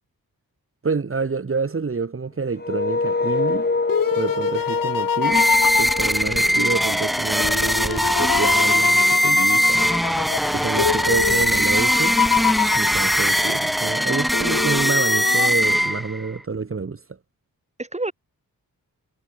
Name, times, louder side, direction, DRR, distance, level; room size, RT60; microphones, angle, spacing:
voice 1, 0.8-3.7 4.1-5.5 5.7-9.9 10.5-12.2 12.7-17.0, right 4 dB, 35° right, 3.3 m, -28 dB
sound 1, 2.6-7.4, left 3 dB, 25° left, 4.4 m, -26 dB
sound 2, 3.3-6.9 7.4-13.6 14.3-15.5, left 9 dB, 65° left, 1.2 m, -26 dB
sound 3, 5.2-16.3, equal, ahead, 0.3 m, -20 dB
voice 2, 10.9-11.4 17.8-18.1, right 2 dB, 20° right, 5.3 m, -31 dB
wide cardioid pair, 140°, 36 cm